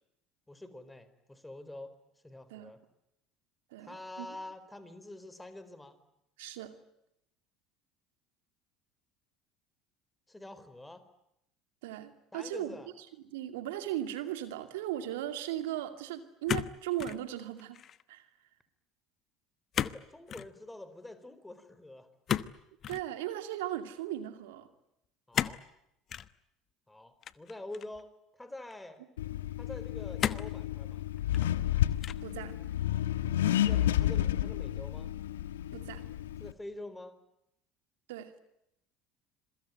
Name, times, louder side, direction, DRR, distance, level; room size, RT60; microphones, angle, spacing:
voice 1, 0.5-1.9 2.2-2.8 3.8-6.0 10.3-11.0 12.3-12.9 19.7-22.1 25.3-25.6 26.9-29.0 29.6-31.0 33.6-35.1 36.4-37.2, left 1 dB, 10° left, 12 dB, 4.3 m, -46 dB
voice 2, 3.7-4.3 6.4-6.8 11.8-17.8 18.1-18.3 22.9-24.7 32.2-32.6 35.7-36.0 38.1-38.3, right 12 dB, 70° right, 10 dB, 2.4 m, -37 dB
sound 1, 16.5-17.2 17.6-18.0 19.7-20.0 20.3-20.5 22.3-23.1 25.3-25.7 26.1-26.3 27.2-28.0 28.7-28.8 30.2-30.6 31.2-31.7 32.0-32.4, left 9 dB, 45° left, 1.1 m, -34 dB
Accelerating revving vroom, 29.2-36.5, left 12 dB, 80° left, 1.2 m, -31 dB
27.0 x 23.0 x 9.0 m, 0.80 s
hypercardioid pair, 65°, 0 cm